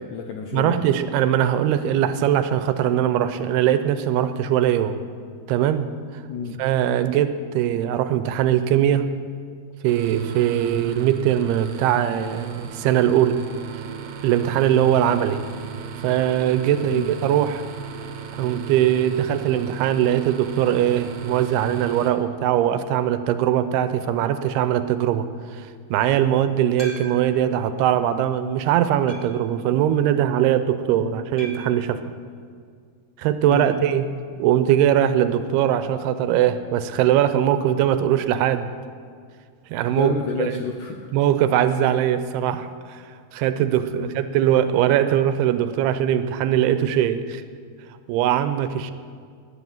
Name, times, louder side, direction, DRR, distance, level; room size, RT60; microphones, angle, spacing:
voice 1, 0.0-0.8 6.3-6.6 15.0-15.2 16.9-17.1 31.0-31.2 33.5-33.7 39.9-41.1 43.9-44.2, left 6 dB, 75° left, 3 dB, 1.8 m, -30 dB
voice 2, 0.5-5.0 5.5-5.9 6.6-9.1 9.8-13.4 14.2-15.4 16.0-17.6 18.4-25.3 25.5-32.0 33.2-34.1 34.4-38.7 39.7-40.1 40.4-40.6 41.1-43.0 43.3-47.4 48.1-48.9, right 10 dB, 80° right, 11 dB, 2.7 m, -21 dB
sound 1, 9.9-22.1, right 8 dB, 60° right, 1.9 m, -35 dB
sound 2, 26.8-27.5 28.1-28.2 29.1-29.5 31.4-31.9 33.5-33.8 34.1-34.2 34.4-34.5 36.5-36.6, right 1 dB, 35° left, 0.4 m, -40 dB
18.5 x 10.5 x 7.3 m, 2.1 s
omnidirectional pair, 4.7 m